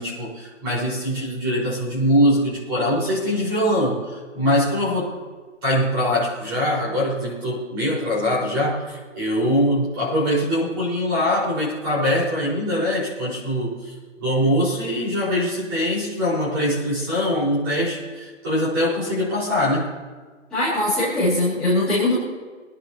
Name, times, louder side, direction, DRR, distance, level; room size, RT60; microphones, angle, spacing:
voice 1, 0.0-5.1 5.6-13.9 14.2-19.9, equal, 15° right, -7 dB, 5.0 m, -22 dB
voice 2, 20.5-22.1, left 1 dB, ahead, -17 dB, 3.9 m, -21 dB
25.0 x 11.0 x 3.0 m, 1.5 s
hypercardioid pair, 175°, 39 cm